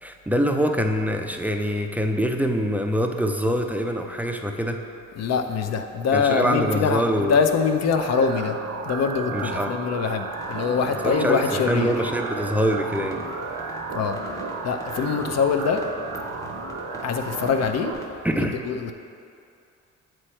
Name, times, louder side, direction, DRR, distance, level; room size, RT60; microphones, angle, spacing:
voice 1, 0.0-4.8 6.1-7.4 9.3-9.7 11.0-13.2 18.2-18.5, equal, 5° right, 3 dB, 0.3 m, -24 dB
voice 2, 5.2-8.6 8.8-11.9 13.9-14.2 14.6-15.8 17.0-17.9 18.4-18.9, left 5 dB, 60° left, 7 dB, 0.5 m, -24 dB
sound 1, 7.9-17.9, right 4 dB, 70° right, 0.7 m, -33 dB
sound 2, 10.3-18.2, left 1 dB, 10° left, 0.7 m, -42 dB
7.5 x 3.1 x 4.3 m, 2.5 s
cardioid pair, 90°, 30 cm